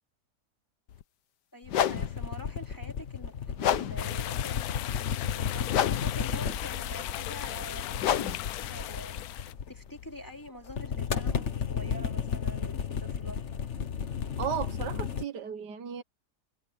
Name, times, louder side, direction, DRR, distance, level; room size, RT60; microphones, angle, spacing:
sound 1, 0.9-1.0 1.6-10.5, left 10 dB, 90° left, 1.6 m, -33 dB
voice 1, 1.5-8.3 8.6-9.2 9.7-13.4, equal, 10° left, 2.9 m, -46 dB
sound 2, 1.9-10.0 10.6-15.2, left 7 dB, 45° left, 1.4 m, -34 dB
sound 3, 4.0-9.5, left 14 dB, 70° left, 1.0 m, -37 dB
voice 2, 14.4-16.0, right 8 dB, 85° right, 1.8 m, -35 dB
omnidirectional pair, 1.7 m